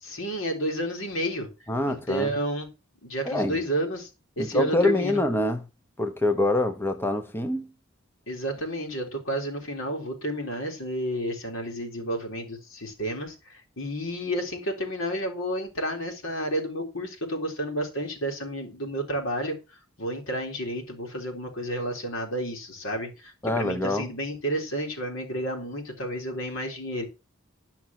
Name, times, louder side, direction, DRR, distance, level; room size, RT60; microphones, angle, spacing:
voice 1, 0.0-1.5 1.9-2.7 3.0-4.1 4.4-5.2 8.3-19.6 20.0-27.0, right 1 dB, 70° left, 3.7 m, -31 dB
voice 2, 1.7-2.3 3.2-3.6 4.4-5.6 6.0-7.7 23.4-24.1, left 1 dB, 10° left, 0.8 m, -25 dB
12.5 x 5.9 x 5.9 m
head